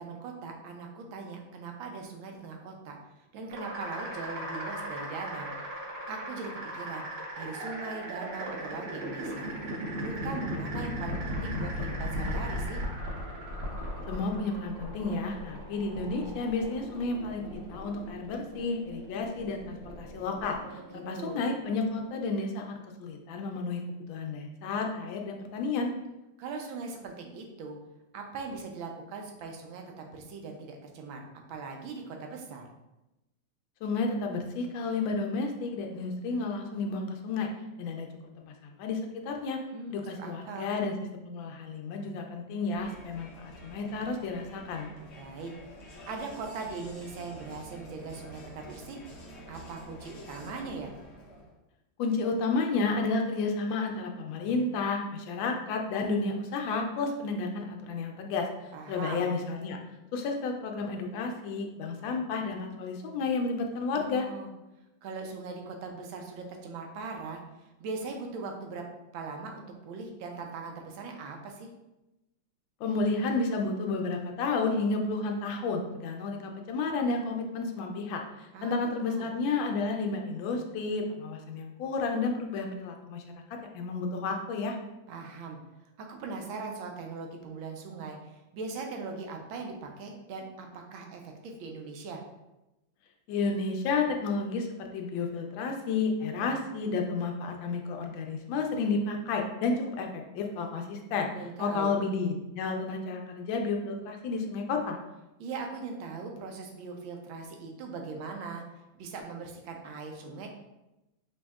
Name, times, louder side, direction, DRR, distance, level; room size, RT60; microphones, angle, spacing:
voice 1, 0.0-3.0 3.3-5.8 6.1-7.0 7.4-9.5 10.0-12.8 20.7-20.8 21.1-21.4 26.4-27.8 28.1-32.7 39.7-40.7 45.2-45.5 46.1-49.0 49.5-50.9 58.7-59.3 63.9-64.5 65.0-67.4 67.8-68.8 69.1-71.7 78.5-78.7 79.1-79.3 85.1-85.6 86.0-92.2 101.3-101.9 105.4-108.6 109.0-110.5, right 4 dB, 85° right, 3 dB, 1.4 m, -40 dB
sound 1, 3.5-22.3, equal, 50° right, 0.8 m, -37 dB
voice 2, 14.1-20.6 20.9-23.8 24.1-25.9 33.8-37.5 37.8-38.1 38.5-39.6 39.9-44.9 52.0-58.5 58.9-59.8 60.1-64.3 72.8-83.2 83.7-84.8 93.3-101.3 101.6-105.0, left 3 dB, 80° left, 3 dB, 1.3 m, -31 dB
Crowd, 42.7-51.6, equal, 60° left, 0.7 m, -48 dB
5.2 x 2.7 x 2.3 m, 0.96 s
omnidirectional pair, 2.1 m